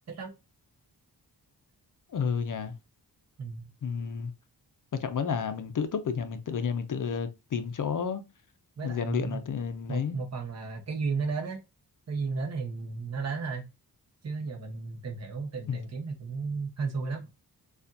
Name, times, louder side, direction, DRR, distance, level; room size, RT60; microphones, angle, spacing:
voice 1, 2.1-2.7 3.8-4.3 5.0-8.2 8.8-10.2 15.7-15.8, left 6 dB, 50° left, 0.6 m, -31 dB
voice 2, 3.4-3.7 7.6-7.7 8.8-9.4 9.9-11.6 12.1-13.7 14.2-17.2, right 4 dB, 40° right, 0.9 m, -34 dB
6.8 x 2.5 x 2.5 m
wide cardioid pair, 150°, 41 cm